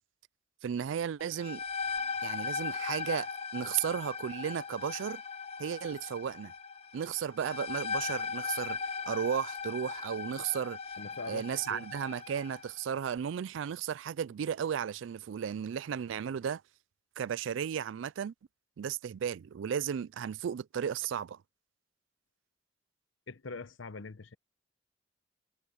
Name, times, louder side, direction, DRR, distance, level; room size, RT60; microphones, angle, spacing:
voice 1, 0.6-1.6 2.2-5.2 5.6-6.5 6.9-10.8 11.3-16.6 17.2-18.3 18.8-21.4, right 8 dB, 75° right, 0.3 m, -34 dB
sound 1, 1.2-12.7, left 5 dB, 35° left, 1.2 m, -38 dB
voice 2, 11.0-11.9 23.3-24.3, left 3 dB, 85° left, 0.9 m, -43 dB
head